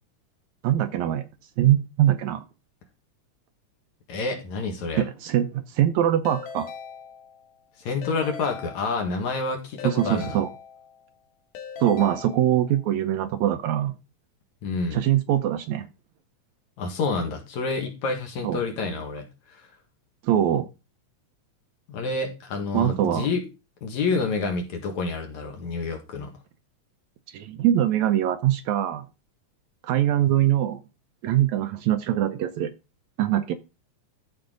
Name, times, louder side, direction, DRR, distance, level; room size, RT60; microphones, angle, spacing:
voice 1, 0.6-1.3 1.6-2.4 5.0-6.7 9.8-10.5 11.8-13.9 14.9-15.9 18.4-18.6 20.2-20.7 22.7-23.3 27.3-29.1 29.8-30.8 31.2-32.7 33.2-33.5, right 11 dB, 75° right, 1.8 m, -23 dB
voice 2, 4.1-5.0 7.8-10.4 14.6-15.0 16.8-19.7 21.9-23.4 23.8-26.3, left 4 dB, 65° left, 3.1 m, -28 dB
Keyboard (musical) / Ringtone, 6.3-7.6 8.0-9.3 9.8-11.1 11.6-12.9, left 6 dB, 85° left, 2.7 m, -40 dB
13.5 x 4.6 x 3.9 m
omnidirectional pair, 3.6 m